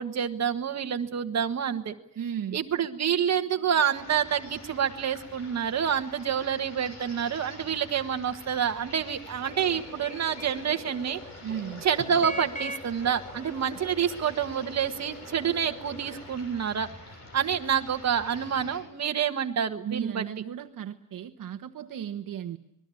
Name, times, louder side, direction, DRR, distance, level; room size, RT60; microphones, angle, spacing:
voice 1, 0.0-1.9 2.5-11.2 11.8-16.9 17.3-20.3, right 8 dB, 50° right, 6 dB, 1.6 m, -28 dB
voice 2, 2.2-2.6 11.4-11.9 19.8-22.6, right 9 dB, 70° right, 7 dB, 1.3 m, -35 dB
E.spring country lane song thrush birds brook, 3.9-18.8, left 1 dB, 50° left, 7.3 m, -47 dB
sound 1, 9.4-16.3, equal, 20° left, 3.7 m, -42 dB
26.5 x 20.5 x 8.5 m, 0.75 s
wide cardioid pair, 175°, 34 cm